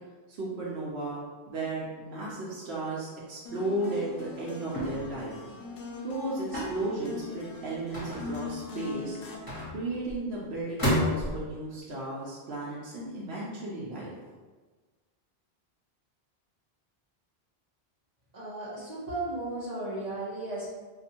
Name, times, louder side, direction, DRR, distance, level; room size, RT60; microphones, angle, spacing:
voice 1, 0.3-5.4 6.0-9.2 9.7-14.1, right 2 dB, 85° right, -6 dB, 1.0 m, -34 dB
sound 1, 3.4-9.4, left 4 dB, 70° left, 0.8 m, -41 dB
sound 2, 4.7-5.2 6.5-6.9 7.9-8.6 9.5-10.2 10.8-11.5, left 1 dB, 20° left, 1.2 m, -30 dB
voice 2, 18.3-20.7, right 2 dB, 45° right, -7 dB, 1.0 m, -35 dB
2.6 x 2.5 x 4.2 m, 1.4 s
omnidirectional pair, 1.0 m